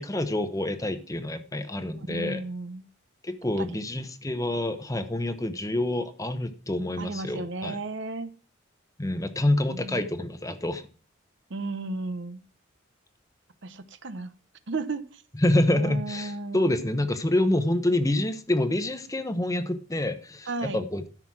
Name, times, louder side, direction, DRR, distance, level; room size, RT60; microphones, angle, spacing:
voice 1, 0.0-2.4 3.2-7.8 9.0-10.8 15.3-21.1, left 1 dB, 15° left, 10 dB, 0.9 m, -27 dB
voice 2, 2.1-2.8 3.6-3.7 7.0-8.3 9.7-10.1 11.5-12.4 13.6-14.3 14.7-15.2 15.7-16.7 20.5-20.8, right 2 dB, 60° right, 13 dB, 0.9 m, -34 dB
13.0 x 6.1 x 6.1 m, 0.38 s
head